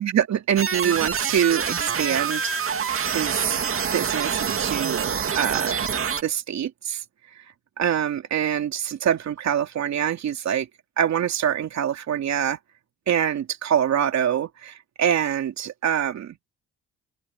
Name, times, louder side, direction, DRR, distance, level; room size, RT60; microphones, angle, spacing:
voice 1, 0.0-2.5 3.1-3.6 3.9-5.8 6.2-7.0 7.8-10.7 11.0-12.6 13.1-16.4, right 9 dB, 65° right, 2.9 m, -25 dB
sound 1, 0.6-6.2, right 7 dB, 45° right, 2.3 m, -26 dB
open air
cardioid pair, 90°, 30 cm